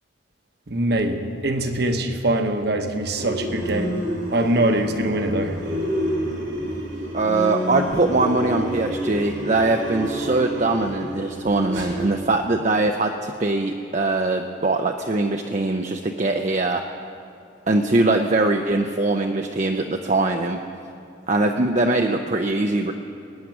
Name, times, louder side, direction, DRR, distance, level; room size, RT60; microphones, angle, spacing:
voice 1, 0.7-4.0 4.3-5.6, right 1 dB, 55° right, 6 dB, 1.1 m, -23 dB
sound 1, 3.2-12.1, equal, 80° right, 3.3 m, -29 dB
voice 2, 7.1-16.8 17.7-20.6 21.3-22.9, right 2 dB, 35° right, 3 dB, 0.5 m, -22 dB
21.0 x 9.5 x 6.0 m, 2.6 s
head